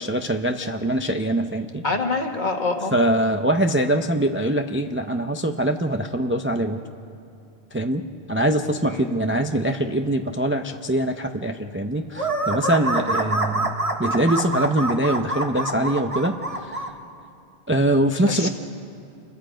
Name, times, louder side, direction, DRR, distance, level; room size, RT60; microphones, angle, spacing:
voice 1, 0.0-1.8 2.9-6.8 7.7-13.7 14.0-16.3 16.6-16.8 17.7-18.5, right 1 dB, 15° right, 5 dB, 0.6 m, -23 dB
voice 2, 1.8-3.0 8.9-9.2 18.3-18.5, left 3 dB, 45° left, 4 dB, 1.7 m, -26 dB
sound 1, 12.1-16.9, right 2 dB, 30° right, 1.6 m, -26 dB
29.0 x 22.5 x 5.1 m, 2.6 s
omnidirectional pair, 1.1 m